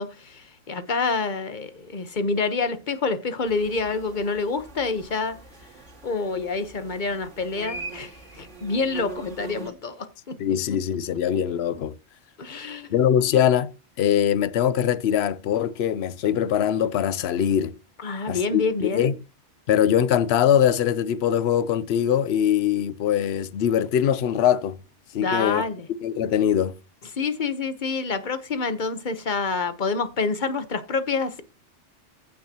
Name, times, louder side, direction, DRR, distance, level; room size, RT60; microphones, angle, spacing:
voice 1, 0.0-5.4 6.0-10.3 12.4-13.0 18.0-19.1 25.1-25.9 27.2-31.4, left 4 dB, 40° left, 1.2 m, -27 dB
sound 1, 3.5-9.7, right 3 dB, 75° right, 2.5 m, -42 dB
voice 2, 10.4-11.9 12.9-13.7 14.0-17.7 18.3-19.1 19.7-24.8 25.1-25.6 26.0-26.7, left 9 dB, 65° left, 0.9 m, -22 dB
15.0 x 6.0 x 2.9 m
omnidirectional pair, 1.2 m